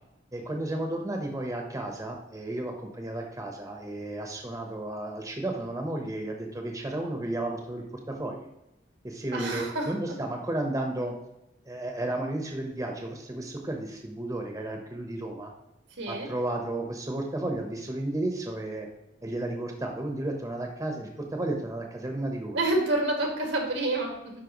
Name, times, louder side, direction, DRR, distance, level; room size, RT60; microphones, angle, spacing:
voice 1, 0.3-8.5 9.0-11.1 11.7-15.5 16.1-18.9 19.2-22.6, right 1 dB, 20° right, 2 dB, 0.9 m, -33 dB
voice 2, 9.3-9.9 16.0-16.3 22.5-24.3, right 2 dB, 85° right, 1 dB, 2.0 m, -28 dB
10.5 x 4.4 x 3.0 m, 0.89 s
head